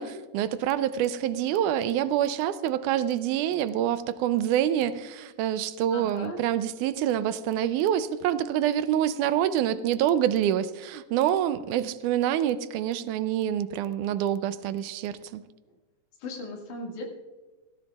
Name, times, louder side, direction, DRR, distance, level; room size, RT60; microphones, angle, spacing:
voice 1, 0.0-15.4, right 11 dB, 90° right, 13 dB, 2.1 m, -26 dB
voice 2, 5.9-6.4 16.2-17.1, left 2 dB, 75° left, 1 dB, 3.4 m, -37 dB
17.0 x 15.0 x 2.3 m, 1.2 s
omnidirectional pair, 3.5 m